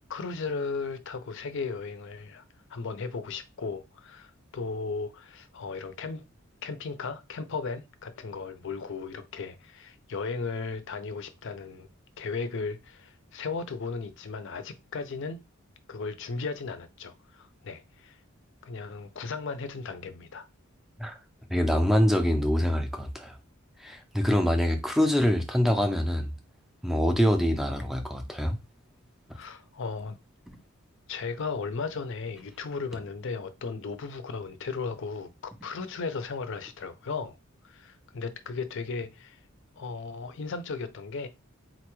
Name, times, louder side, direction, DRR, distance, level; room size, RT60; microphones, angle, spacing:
voice 1, 0.1-2.4 2.7-6.2 6.6-11.9 12.2-15.4 15.9-18.2 18.6-20.5 29.3-30.2 31.1-37.4 37.6-39.4 39.8-41.3, left 4 dB, 60° left, 0.5 m, -36 dB
voice 2, 21.5-23.4 23.8-26.3 26.8-28.6, equal, ahead, 0.4 m, -25 dB
4.0 x 2.2 x 3.0 m
head